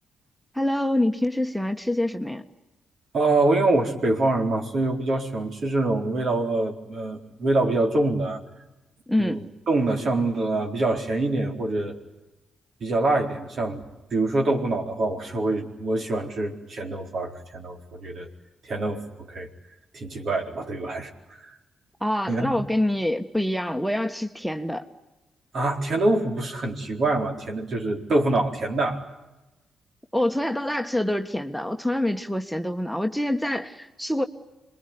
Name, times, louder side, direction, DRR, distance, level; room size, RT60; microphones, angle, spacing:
voice 1, 0.5-2.4 9.1-9.5 22.0-24.8 30.1-34.2, left 1 dB, ahead, 7 dB, 1.7 m, -26 dB
voice 2, 3.1-8.4 9.2-12.0 12.8-13.8 14.1-18.3 18.6-19.5 19.9-21.6 22.3-22.5 25.5-29.1, right 2 dB, 60° right, 2 dB, 4.3 m, -25 dB
27.0 x 21.5 x 9.7 m, 1.0 s
hypercardioid pair, 45°, 0 cm